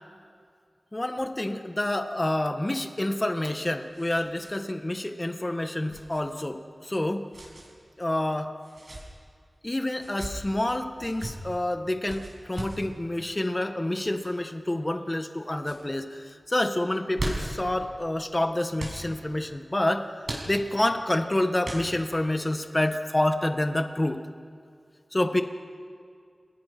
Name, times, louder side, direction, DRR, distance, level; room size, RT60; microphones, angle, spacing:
voice 1, 0.9-7.3 8.0-8.5 9.6-20.1 20.4-24.2 25.1-25.4, left 1 dB, 25° left, 7 dB, 1.6 m, -28 dB
sound 1, 3.8-4.6 4.8-5.0 5.9-6.2 7.3-7.7 8.6-9.0 9.9-10.3 11.0-11.3 12.1-12.8 14.0-14.3 14.9-15.3 15.6-15.8 16.9-17.6 18.8-19.0 20.2-20.9 21.6-22.2, right 1 dB, 55° right, 6.9 m, -37 dB
29.0 x 20.0 x 6.1 m, 2.3 s
wide cardioid pair, 65°, 0 cm